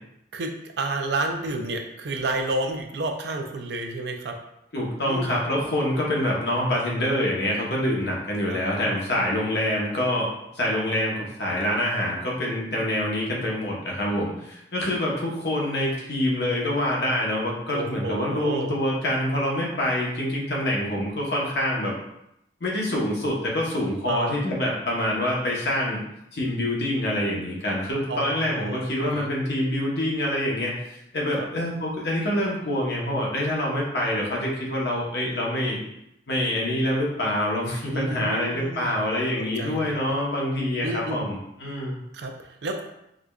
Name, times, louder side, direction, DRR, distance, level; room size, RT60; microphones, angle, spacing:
voice 1, 0.3-4.4 5.1-5.4 8.5-8.6 17.7-18.8 24.1-24.4 28.1-29.3 31.4-31.5 37.9-38.9 39.4-40.0 40.8-41.3 42.1-42.8, right 2 dB, 65° right, 4 dB, 0.4 m, -31 dB
voice 2, 4.7-21.9 22.6-26.0 26.3-35.8 36.3-42.0, left 1 dB, 65° left, -3 dB, 0.9 m, -26 dB
4.7 x 2.3 x 2.3 m, 0.81 s
head